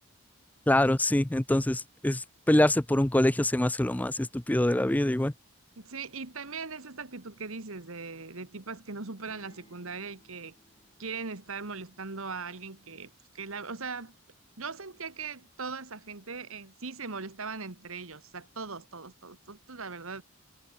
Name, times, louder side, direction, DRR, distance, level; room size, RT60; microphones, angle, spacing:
voice 1, 0.7-5.3, left 1 dB, 5° left, 0.4 m, -25 dB
voice 2, 5.8-10.5 11.0-14.1 14.6-20.2, right 4 dB, 70° right, 1.7 m, -40 dB
sound 1, 9.2-13.0, left 1 dB, 25° left, 7.4 m, -63 dB
head